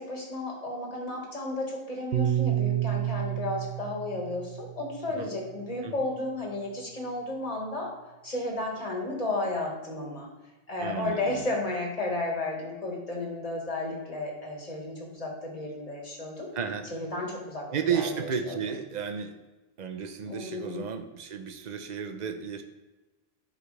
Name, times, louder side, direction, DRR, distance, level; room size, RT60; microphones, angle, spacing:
voice 1, 0.0-7.9 8.2-10.3 10.7-16.5 16.9-18.6 20.3-20.8, left 2 dB, 35° left, -1 dB, 1.8 m, -33 dB
Piano, 2.1-6.6, right 13 dB, 85° right, 0.9 m, -31 dB
voice 2, 10.8-11.4 16.5-16.8 17.7-19.3 19.8-22.6, right 7 dB, 45° right, 7 dB, 0.8 m, -33 dB
10.5 x 5.0 x 3.3 m, 1.2 s
omnidirectional pair, 1.1 m